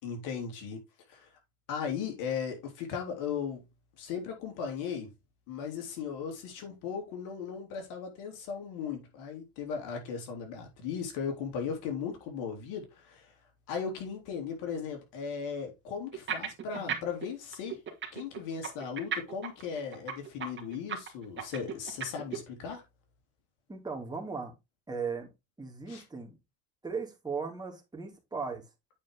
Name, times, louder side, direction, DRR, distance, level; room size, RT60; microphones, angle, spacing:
voice 1, 0.0-0.8 1.1-1.3 1.7-3.6 4.0-5.1 5.5-13.3 13.7-17.8 18.1-22.8 25.9-26.0, left 6 dB, 70° left, 3.4 m, -37 dB
sound 1, 16.1-17.3 17.5-22.4, right 7 dB, 35° right, 2.4 m, -35 dB
voice 2, 23.7-24.5 24.9-25.3 25.6-26.4 26.8-28.7, right 5 dB, 10° right, 3.0 m, -37 dB
8.6 x 4.8 x 3.8 m
supercardioid pair, 90°, 32 cm